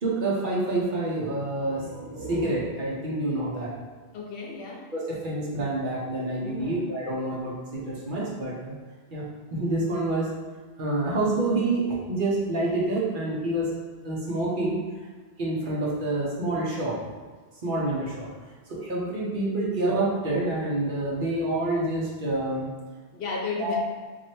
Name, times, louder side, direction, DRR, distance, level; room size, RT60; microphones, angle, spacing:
voice 1, 0.0-1.9 2.3-3.7 4.9-8.7 9.1-9.2 9.5-10.3 10.8-13.7 14.0-15.1 15.4-17.0 17.6-18.3 18.7-22.7 23.6-23.8, right 2 dB, 55° right, -5 dB, 0.9 m, -27 dB
sound 1, 1.5-5.1, right 2 dB, 85° right, 0.9 m, -42 dB
voice 2, 4.1-4.9 6.4-6.8 23.1-23.8, left 4 dB, 65° left, -1 dB, 0.8 m, -33 dB
3.2 x 2.6 x 4.3 m, 1.4 s
omnidirectional pair, 1.1 m